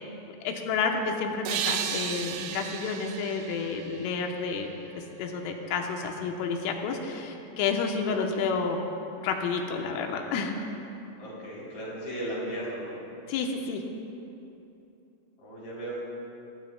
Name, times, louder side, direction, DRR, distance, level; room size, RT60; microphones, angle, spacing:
voice 1, 0.5-4.7 5.2-8.8 9.2-10.6 13.3-13.8, left 5 dB, 85° left, 2 dB, 3.6 m, -30 dB
sound 1, 1.4-4.9, right 9 dB, 90° right, 3.2 m, -34 dB
voice 2, 11.2-13.0 15.4-16.0, right 1 dB, 45° left, -7 dB, 4.8 m, -36 dB
22.0 x 15.0 x 2.3 m, 2.8 s
omnidirectional pair, 5.6 m